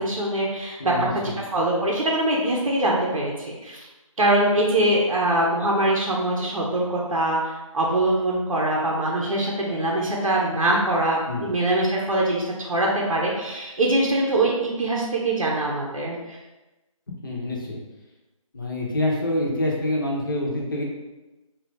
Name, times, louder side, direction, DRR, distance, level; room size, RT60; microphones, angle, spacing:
voice 1, 0.0-0.9 1.4-3.9 4.2-16.4, right 1 dB, 75° right, -2 dB, 0.7 m, -23 dB
voice 2, 0.8-1.4 11.3-11.5 17.2-17.8 18.5-20.8, left 1 dB, 40° left, -2 dB, 0.6 m, -26 dB
2.7 x 2.3 x 3.3 m, 1.1 s
figure-of-eight pair, 165°, 18 cm